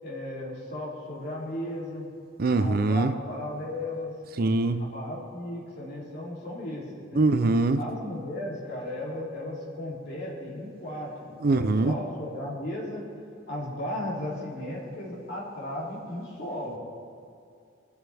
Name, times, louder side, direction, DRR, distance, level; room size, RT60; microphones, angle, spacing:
voice 1, 0.0-2.1 2.6-4.1 4.8-7.4 7.7-13.0 13.5-16.8, left 1 dB, 55° left, -5 dB, 3.0 m, -35 dB
voice 2, 2.4-3.1 4.4-4.8 7.2-7.8 11.4-11.9, right 3 dB, 50° right, 10 dB, 0.5 m, -23 dB
23.0 x 7.9 x 3.5 m, 2.4 s
head